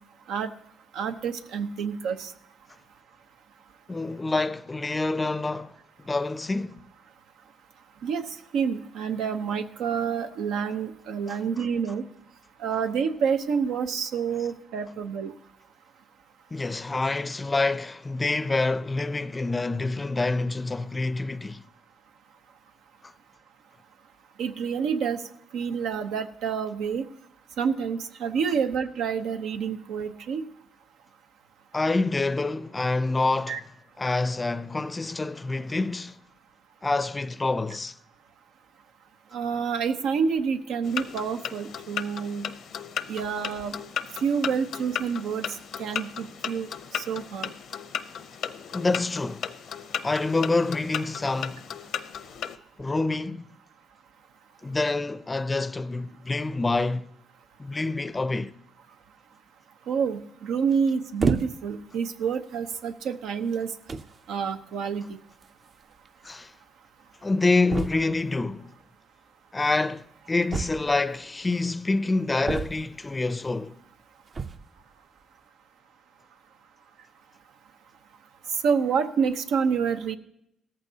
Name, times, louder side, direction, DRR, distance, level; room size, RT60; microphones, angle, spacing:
voice 1, 0.9-2.3 8.0-8.3 8.5-12.0 12.6-15.3 24.4-25.2 25.5-27.0 27.6-30.4 33.5-33.6 39.3-42.5 43.1-43.7 44.2-47.5 59.9-63.7 64.3-65.2 78.6-80.2, right 6 dB, 85° right, 0.9 m, -28 dB
voice 2, 3.9-5.7 6.0-6.8 11.3-11.4 16.5-21.6 23.0-23.1 31.7-33.6 34.0-36.2 36.8-38.0 48.7-49.5 50.0-51.7 52.8-53.5 54.6-57.1 57.6-58.5 66.2-66.5 67.2-68.7 69.5-73.8, left 3 dB, 20° left, 0.5 m, -27 dB
sound 1, 40.8-52.6, left 8 dB, 70° left, 0.7 m, -36 dB
sound 2, 61.2-61.8 62.6-62.7 63.5-63.6 63.9-64.2 65.4-65.5 65.7-65.8 66.0-66.1 67.7-68.2 70.5-71.2 72.4-73.1 74.3-74.7, right 4 dB, 40° right, 0.6 m, -30 dB
17.0 x 14.0 x 2.8 m
cardioid pair, 90°, 0 cm